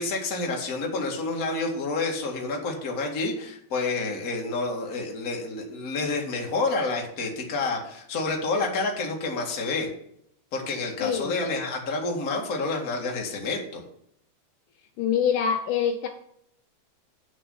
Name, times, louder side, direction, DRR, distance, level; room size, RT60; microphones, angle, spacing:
voice 1, 0.0-9.9 10.5-13.8, left 3 dB, 35° left, 0 dB, 1.5 m, -29 dB
voice 2, 11.0-11.5 15.0-16.1, left 7 dB, 90° left, 5 dB, 1.7 m, -25 dB
9.1 x 6.4 x 5.7 m, 0.73 s
omnidirectional pair, 4.6 m